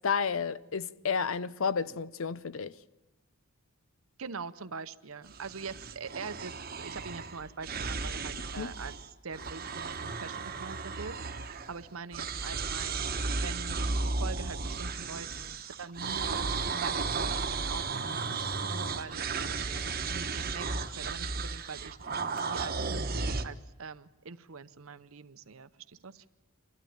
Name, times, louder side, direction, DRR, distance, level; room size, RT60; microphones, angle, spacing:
voice 1, 0.0-2.8 8.6-8.7, left 6 dB, 65° left, 0.6 m, -31 dB
voice 2, 4.2-13.1 13.4-16.5 16.8-26.3, right 5 dB, 70° right, 0.8 m, -44 dB
sound 1, 5.3-9.1 9.3-11.9 12.1-23.5, right 4 dB, 40° right, 1.1 m, -34 dB
27.5 x 12.5 x 8.8 m
head